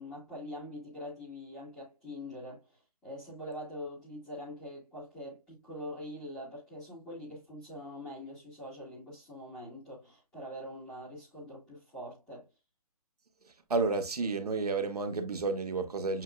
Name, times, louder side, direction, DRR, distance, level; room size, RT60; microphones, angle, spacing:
voice 1, 0.0-2.7 3.0-12.5, left 1 dB, 5° left, 1.8 m, -44 dB
voice 2, 13.7-16.2, right 3 dB, 90° right, 1.4 m, -31 dB
7.4 x 3.0 x 2.2 m
hypercardioid pair, 175°, 19 cm